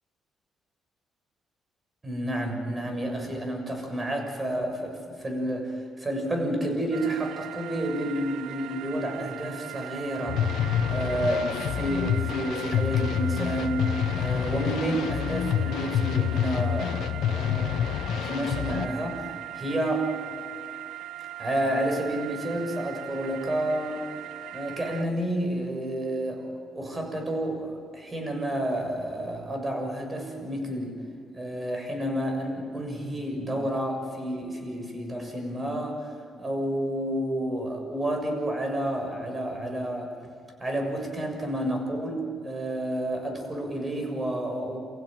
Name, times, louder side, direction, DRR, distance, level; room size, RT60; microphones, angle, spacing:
voice 1, 2.0-10.4 10.9-20.1 21.4-24.0 24.5-31.0 31.3-40.1 40.6-44.8, right 1 dB, 25° right, 3 dB, 6.9 m, -30 dB
sound 1, 6.9-25.0, right 14 dB, 85° right, 0.5 m, -40 dB
sound 2, 10.3-18.9, left 9 dB, 80° left, 1.0 m, -27 dB
29.5 x 15.5 x 9.2 m, 2.2 s
cardioid pair, 90°, 0 cm